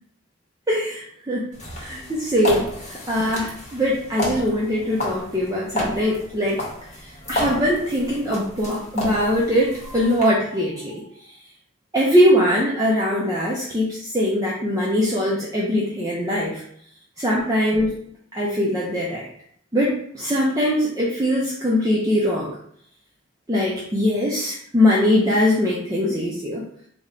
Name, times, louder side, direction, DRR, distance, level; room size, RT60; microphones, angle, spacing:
voice 1, 0.7-1.5 1.8-2.6 2.9-6.6 7.3-10.9 11.9-16.6 17.2-17.9 18.3-19.2 19.7-22.5 23.5-26.6, left 1 dB, 15° right, -5 dB, 0.5 m, -21 dB
sound 1, 1.5-10.2, left 1 dB, 35° left, 0.9 m, -32 dB
3.5 x 2.1 x 3.7 m, 0.66 s
head